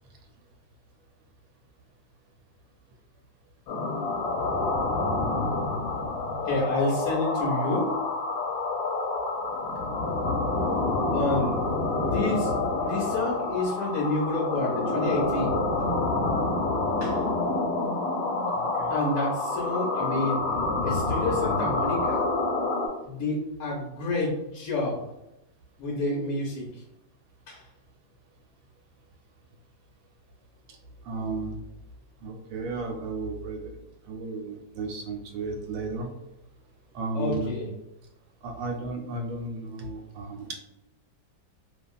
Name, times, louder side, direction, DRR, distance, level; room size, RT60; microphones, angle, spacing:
sound 1, 3.7-22.9, left 2 dB, 90° left, 1.3 m, -28 dB
voice 1, 6.4-8.0 11.1-15.6 17.0-17.2 18.9-20.4 20.8-22.3 23.0-25.0 25.8-26.8 27.5-27.7 37.1-37.7, left 2 dB, 75° left, -2 dB, 0.8 m, -29 dB
voice 2, 18.6-19.0 31.0-31.6 32.2-33.8 34.1-36.1 36.9-37.5 38.4-40.5, right 3 dB, 90° right, 2 dB, 1.3 m, -34 dB
2.8 x 2.4 x 2.3 m, 0.89 s
omnidirectional pair, 2.0 m